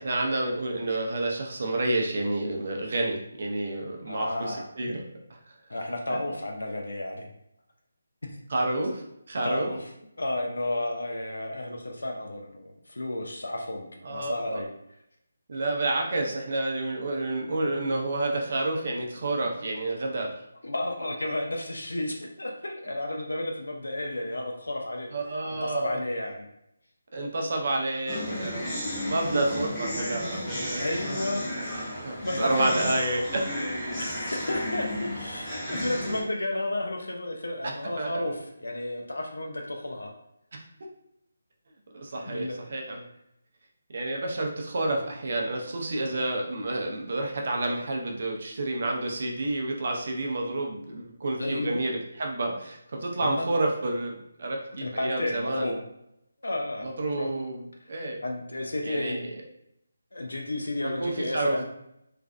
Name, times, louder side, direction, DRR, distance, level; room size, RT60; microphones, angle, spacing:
voice 1, 0.0-5.0 5.3-5.4 8.5-9.7 14.0-14.6 15.5-20.3 25.1-26.0 27.1-30.8 31.8-33.2 38.0-38.1 40.5-40.6 41.9-43.0 43.9-55.7 56.8-58.2 58.8-59.4 60.8-61.6, right 2 dB, 55° right, 1 dB, 0.5 m, -29 dB
voice 2, 4.1-4.7 5.7-7.2 8.2-8.3 9.4-9.9 10.2-14.7 20.6-25.1 25.5-26.5 30.7-31.9 32.2-32.9 33.9-40.1 42.2-42.6 51.4-51.8 53.2-53.5 54.8-55.8 56.4-57.3 58.2-59.3 60.1-61.6, left 1 dB, 85° left, 1 dB, 0.4 m, -32 dB
sound 1, 28.1-36.2, left 1 dB, ahead, 0.7 m, -33 dB
2.4 x 2.1 x 2.4 m, 0.78 s
figure-of-eight pair, 160°, 0 cm